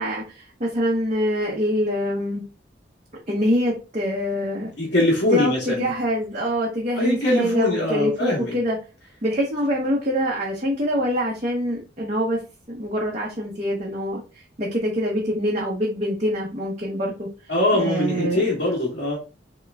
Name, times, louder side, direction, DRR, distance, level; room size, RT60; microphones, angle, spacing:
voice 1, 0.0-2.4 3.3-4.7 5.3-8.8 9.2-12.4 12.7-17.3 17.7-18.4, equal, 40° right, -4 dB, 0.9 m, -25 dB
voice 2, 4.8-5.9 7.0-8.6 17.5-19.2, left 1 dB, 65° left, -5 dB, 1.3 m, -22 dB
3.6 x 3.0 x 3.4 m, 0.32 s
head